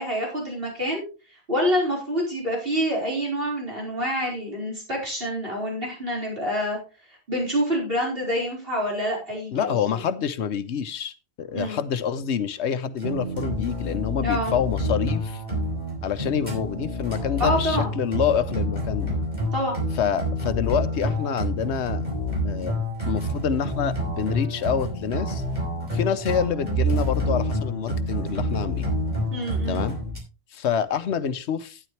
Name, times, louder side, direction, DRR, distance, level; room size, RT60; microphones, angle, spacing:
voice 1, 0.0-6.8 7.3-9.7 11.5-11.8 14.2-14.5 17.4-17.9 19.5-19.8 29.3-29.8, equal, 60° right, 5.0 m, -27 dB
voice 2, 9.5-15.4 16.0-19.1 20.0-22.0 22.4-22.7 23.1-25.4 25.9-28.9 29.7-30.0 30.5-31.8, left 8 dB, 90° left, 1.0 m, -27 dB
sound 1, 13.0-30.2, equal, 40° right, 4.4 m, -28 dB
12.5 x 9.9 x 3.2 m
omnidirectional pair, 1.1 m